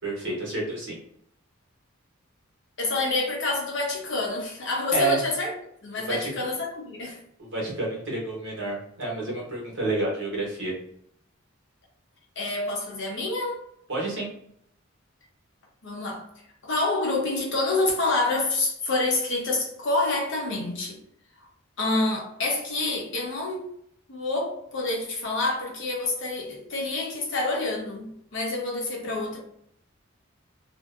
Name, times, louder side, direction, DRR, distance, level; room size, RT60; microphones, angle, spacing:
voice 1, 0.0-1.0 4.9-5.2 6.1-6.3 7.4-10.7 13.9-14.3, right 2 dB, 60° right, 1.1 m, -29 dB
voice 2, 2.8-5.5 5.8-7.2 12.4-13.6 15.8-21.0 21.8-23.7 24.1-29.4, left 2 dB, 65° left, 0.8 m, -27 dB
2.6 x 2.1 x 2.5 m
head